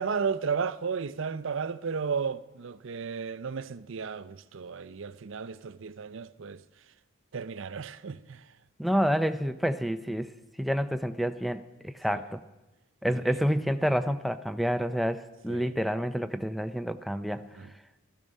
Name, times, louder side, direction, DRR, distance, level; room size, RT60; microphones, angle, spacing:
voice 1, 0.0-6.6 7.3-8.4 12.1-12.2 15.5-15.7 17.6-17.7, right 5 dB, 60° right, 0.5 m, -33 dB
voice 2, 8.8-10.3 10.6-12.4 13.0-17.4, equal, ahead, 0.4 m, -28 dB
16.0 x 13.5 x 5.4 m
head